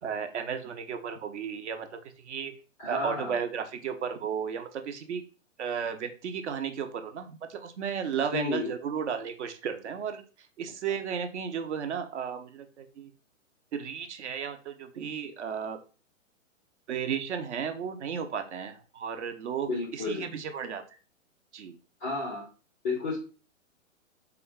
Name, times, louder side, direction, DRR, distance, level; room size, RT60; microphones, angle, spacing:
voice 1, 0.0-1.9 2.2-2.5 2.9-5.2 5.6-10.2 10.6-13.1 13.7-15.8 16.9-20.8 21.5-21.8, right 7 dB, 55° right, 7 dB, 0.7 m, -34 dB
voice 2, 2.8-3.4 8.3-8.7 19.7-20.3 22.0-22.4 22.8-23.2, left 3 dB, 10° left, -4 dB, 0.3 m, -31 dB
3.7 x 2.3 x 3.6 m, 0.36 s
hypercardioid pair, 130°, 40 cm